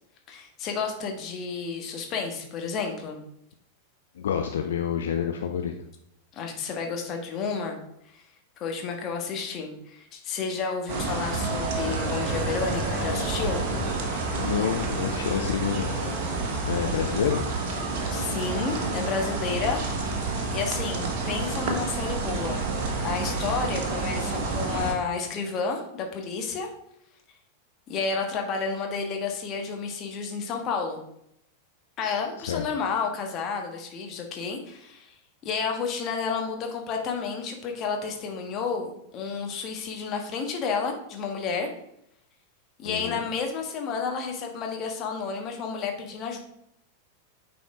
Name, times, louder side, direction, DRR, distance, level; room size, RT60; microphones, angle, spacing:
voice 1, 0.3-3.2 6.3-7.8 8.0-8.2 8.6-13.6 18.1-20.1 20.5-22.6 23.0-26.7 27.9-31.0 32.0-35.1 35.4-41.7 42.8-46.4, left 5 dB, 35° left, 3 dB, 1.4 m, -31 dB
voice 2, 4.2-5.7 14.3-15.9 16.7-17.5 32.5-32.7 42.8-43.2, left 8 dB, 65° left, 4 dB, 0.5 m, -28 dB
sound 1, 10.9-24.9, right 3 dB, 45° right, 1.3 m, -29 dB
sound 2, 11.5-16.5, right 1 dB, 15° right, 1.9 m, -38 dB
9.3 x 4.3 x 3.6 m, 0.76 s
figure-of-eight pair, 90°, 0 cm